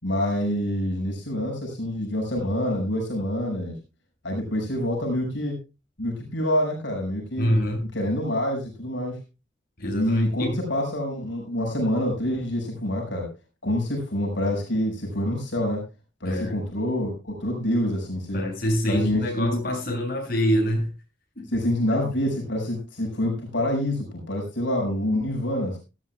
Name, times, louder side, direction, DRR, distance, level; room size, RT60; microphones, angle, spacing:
voice 1, 0.0-3.8 4.2-5.6 6.0-7.5 7.9-9.2 9.9-13.3 13.6-15.8 16.2-18.4 18.9-19.6 21.5-25.8, left 1 dB, 75° left, 0 dB, 6.0 m, -26 dB
voice 2, 7.4-7.8 9.8-10.6 16.2-16.6 18.3-20.9 21.4-21.5 22.1-22.2, equal, 50° left, 0 dB, 7.2 m, -25 dB
18.0 x 15.0 x 2.3 m, 0.30 s
head